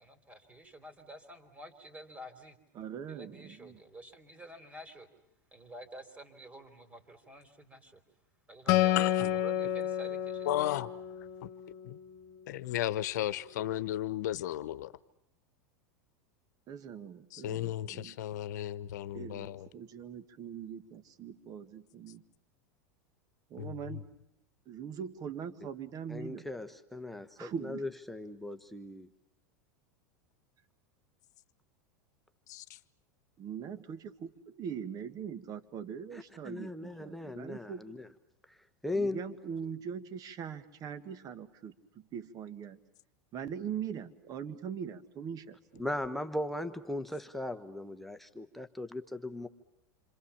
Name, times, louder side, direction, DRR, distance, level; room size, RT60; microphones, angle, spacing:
voice 1, 0.0-2.6 3.1-5.1 5.5-8.0 8.5-10.6, right 1 dB, 15° right, 3.7 m, -49 dB
voice 2, 2.8-3.8 16.7-18.2 19.1-22.2 23.5-24.0 24.7-26.5 27.4-27.9 33.4-37.9 38.9-42.8 43.3-45.8, right 7 dB, 40° right, 1.9 m, -42 dB
Acoustic guitar, 8.7-12.1, left 13 dB, 55° left, 1.5 m, -30 dB
voice 3, 9.0-9.4 10.4-10.9 11.4-11.5 11.8-12.0 12.5-14.9 17.4-19.7 23.6-24.0 32.5-32.6, left 13 dB, 70° left, 1.0 m, -34 dB
voice 4, 26.1-29.1 36.1-38.1 38.8-39.2 45.8-49.5, left 1 dB, ahead, 1.2 m, -38 dB
27.5 x 26.0 x 7.2 m
hypercardioid pair, 100°, 10 cm